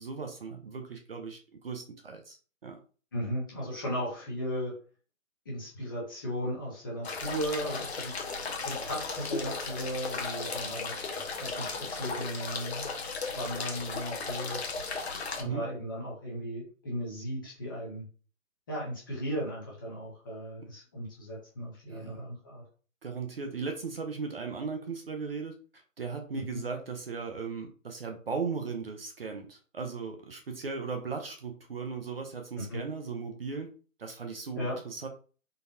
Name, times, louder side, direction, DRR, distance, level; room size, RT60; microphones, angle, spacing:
voice 1, 0.0-2.8 15.4-15.6 21.9-22.2 23.0-25.5 26.0-33.7 34.0-35.1, right 5 dB, 45° right, 4 dB, 0.6 m, -37 dB
voice 2, 3.1-4.7 5.4-8.1 8.4-10.9 11.4-12.9 13.3-14.9 15.4-18.0 18.7-22.6 26.3-26.6 32.6-32.8 34.6-34.8, equal, 15° left, -5 dB, 0.7 m, -36 dB
sound 1, 7.0-15.4, left 4 dB, 50° left, 0.8 m, -36 dB
3.9 x 2.3 x 2.6 m, 0.38 s
hypercardioid pair, 155°, 41 cm